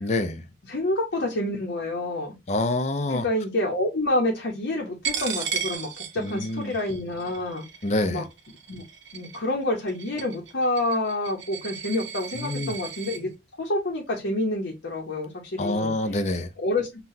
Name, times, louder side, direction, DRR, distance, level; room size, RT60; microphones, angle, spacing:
voice 1, 0.0-0.4 2.5-3.3 6.2-6.7 7.8-8.3 12.3-12.7 15.6-16.5, left 2 dB, 35° left, 0.4 m, -26 dB
voice 2, 0.7-2.3 3.1-7.6 8.1-8.2 8.7-8.8 9.1-13.3 13.6-15.9 16.6-16.9, left 1 dB, 60° left, 0.8 m, -28 dB
Coin (dropping), 5.0-13.2, right 7 dB, 70° right, 0.9 m, -35 dB
5.6 x 2.2 x 2.6 m
head